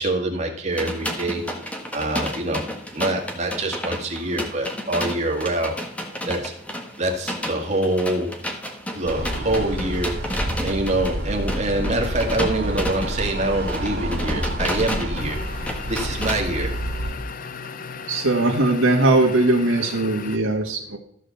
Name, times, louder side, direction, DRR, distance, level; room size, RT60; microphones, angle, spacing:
voice 1, 0.0-1.4 1.9-2.6 2.9-5.8 6.3-6.5 7.0-8.4 8.9-15.4 15.9-16.8, right 1 dB, 35° right, 2 dB, 2.1 m, -25 dB
sound 1, 0.7-16.4, equal, 5° left, 1.6 m, -32 dB
sound 2, 9.0-17.1, right 1 dB, 50° right, 2.4 m, -29 dB
sound 3, 15.2-20.4, left 5 dB, 45° left, 0.7 m, -36 dB
voice 2, 18.1-21.0, right 2 dB, 85° right, -1 dB, 1.8 m, -20 dB
14.0 x 5.0 x 7.1 m, 0.68 s
head